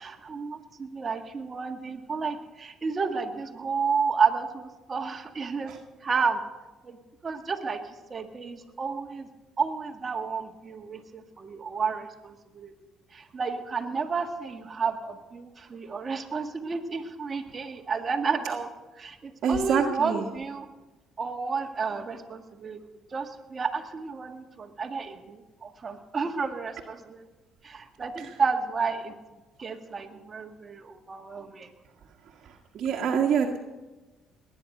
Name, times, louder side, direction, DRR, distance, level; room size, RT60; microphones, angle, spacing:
voice 1, 0.0-5.7 6.0-6.4 6.8-7.0 7.2-7.8 8.1-9.3 9.6-12.7 13.1-18.7 19.0-20.7 21.2-22.8 23.1-27.3 27.6-29.1 29.6-31.7, right 5 dB, 35° right, 5 dB, 1.9 m, -31 dB
voice 2, 19.4-20.2 32.7-33.6, right 7 dB, 60° right, 0 dB, 1.7 m, -25 dB
19.5 x 9.9 x 6.6 m, 1.2 s
supercardioid pair, 80°, 0 cm